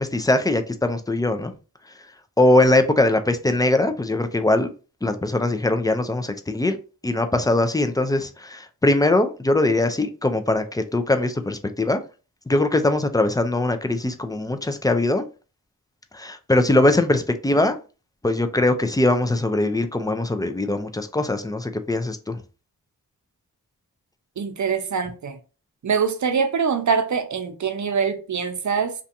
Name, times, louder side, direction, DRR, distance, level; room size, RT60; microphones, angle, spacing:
voice 1, 0.0-1.5 2.4-4.7 5.0-6.8 7.0-12.0 12.5-15.3 16.1-17.8 18.2-22.4, left 2 dB, 10° left, 0.3 m, -21 dB
voice 2, 24.4-25.4 25.8-28.9, right 6 dB, 45° right, 0.6 m, -24 dB
2.6 x 2.3 x 2.5 m
cardioid pair, 40°, 40 cm